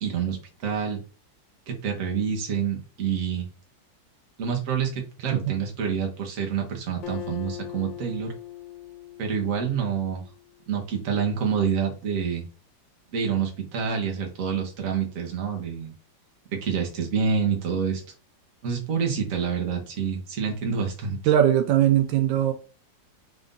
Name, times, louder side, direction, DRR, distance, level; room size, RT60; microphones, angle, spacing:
voice 1, 0.0-1.0 1.7-3.5 4.4-8.3 9.2-10.2 10.7-12.5 13.1-15.9 16.5-18.0 18.6-21.2, right 6 dB, 50° right, 1.3 m, -27 dB
Acoustic guitar, 7.0-10.6, left 13 dB, 90° left, 1.3 m, -40 dB
voice 2, 21.3-22.5, right 11 dB, 85° right, 1.3 m, -20 dB
3.8 x 2.6 x 3.6 m
omnidirectional pair, 2.0 m